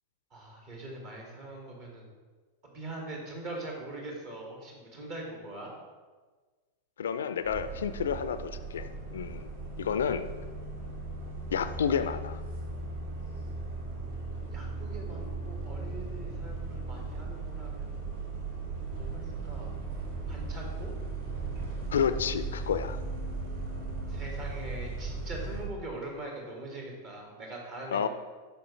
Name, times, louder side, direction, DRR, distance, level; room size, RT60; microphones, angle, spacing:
voice 1, 0.3-2.1 2.6-5.7 14.5-18.1 19.0-19.7 20.3-20.9 24.1-28.1, right 2 dB, 40° right, -1 dB, 1.8 m, -42 dB
voice 2, 7.0-9.5 9.8-10.2 11.5-12.4 21.9-23.0 27.9-28.1, left 7 dB, 65° left, 12 dB, 0.4 m, -30 dB
sound 1, 7.4-25.7, right 3 dB, 60° right, 1.9 m, -37 dB
9.8 x 5.7 x 3.2 m, 1.4 s
figure-of-eight pair, 90°, 0 cm